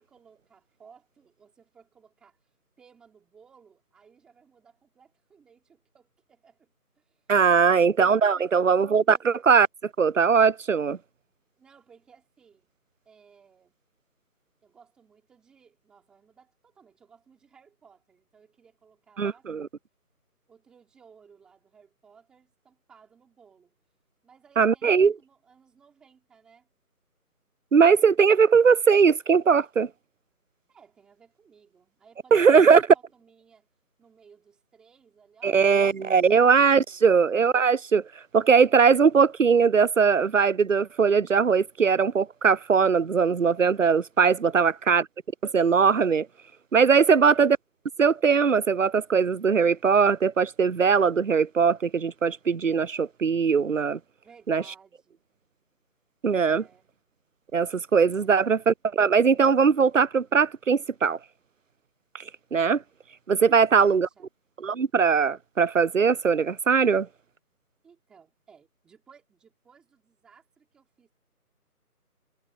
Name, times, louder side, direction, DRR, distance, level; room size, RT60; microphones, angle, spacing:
voice 1, 0.0-2.4 2.8-7.8 8.4-9.2 11.6-12.7 13.0-13.8 14.6-19.5 20.5-23.7 24.2-26.7 30.7-33.7 34.0-36.6 36.9-37.2 44.5-45.0 47.1-47.4 54.2-55.2 56.6-56.9 58.1-58.5 63.5-64.3 67.8-71.1, right 6 dB, ahead, 3.6 m, -58 dB
voice 2, 7.3-9.7 10.0-11.0 19.2-19.7 24.6-25.1 27.7-29.9 32.3-32.8 35.4-38.0 38.3-45.0 45.5-46.3 46.7-47.6 48.0-54.0 54.5-54.6 56.2-56.6 57.5-61.2 62.1-62.2 62.5-62.8 63.3-64.1 64.6-67.1, right 6 dB, 55° right, 0.6 m, -20 dB
figure-of-eight pair, 170°, 46 cm